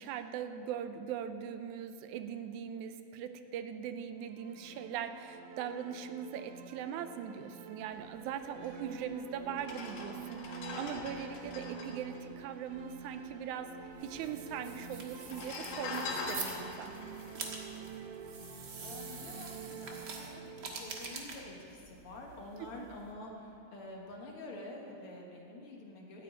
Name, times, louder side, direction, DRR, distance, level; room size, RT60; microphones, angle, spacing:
voice 1, 0.0-13.7 14.0-16.9 22.6-22.7, right 8 dB, 85° right, 9 dB, 2.0 m, -40 dB
sound 1, 4.2-22.1, right 6 dB, 70° right, 1.8 m, -48 dB
sound 2, 8.9-9.0 9.5-13.2 13.5-13.6 13.7-14.4 15.1-18.6 19.1-19.3, left 3 dB, 85° left, 3.2 m, -43 dB
sound 3, 13.9-23.1, right 4 dB, 45° right, 1.6 m, -46 dB
voice 2, 18.3-26.2, left 2 dB, 55° left, -1 dB, 2.0 m, -48 dB
13.5 x 7.8 x 9.0 m, 2.7 s
omnidirectional pair, 3.5 m